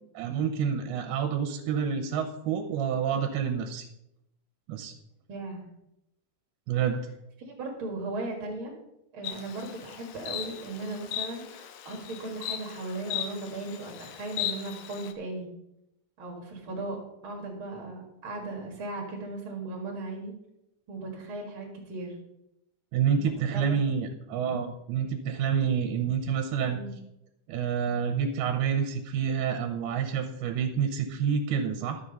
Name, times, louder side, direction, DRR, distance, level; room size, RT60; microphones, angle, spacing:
voice 1, 0.1-3.9 4.7-4.9 6.7-7.0 22.9-26.8 27.5-32.0, right 7 dB, 80° right, 6 dB, 2.6 m, -28 dB
voice 2, 5.3-5.6 7.5-8.7 9.1-15.5 16.2-20.3 20.9-22.2 23.1-23.2 23.5-24.1 26.7-26.9, right 2 dB, 45° right, 1 dB, 1.8 m, -37 dB
Insect, 9.2-15.1, left 11 dB, 75° left, 2.1 m, -37 dB
12.5 x 6.9 x 5.4 m, 0.84 s
omnidirectional pair, 4.8 m